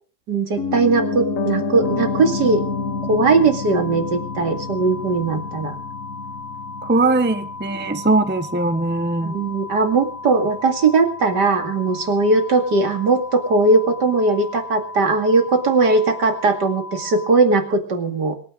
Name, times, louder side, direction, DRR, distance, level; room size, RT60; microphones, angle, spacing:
voice 1, 0.3-2.6 3.1-5.7 9.2-18.3, right 3 dB, 70° right, 6 dB, 2.9 m, -19 dB
Piano, 0.6-10.6 10.9-11.0, left 4 dB, 50° left, 1.7 m, -29 dB
sound 1, 1.8-17.4, left 3 dB, 10° left, 2.9 m, -36 dB
voice 2, 6.8-9.4, right 2 dB, 10° right, 11 dB, 0.8 m, -20 dB
25.5 x 9.6 x 5.2 m, 0.40 s
omnidirectional pair, 1.9 m